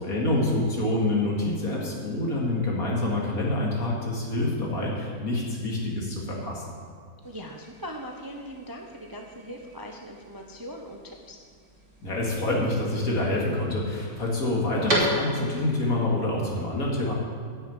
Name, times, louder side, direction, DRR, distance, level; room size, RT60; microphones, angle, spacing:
voice 1, 0.0-6.7 12.0-17.1, left 1 dB, 70° left, -2 dB, 2.6 m, -27 dB
voice 2, 7.2-11.4, equal, 20° right, 1 dB, 0.6 m, -40 dB
sound 1, 7.2-15.7, right 1 dB, 50° right, 2.7 m, -35 dB
9.6 x 6.5 x 8.7 m, 2.2 s
omnidirectional pair, 1.6 m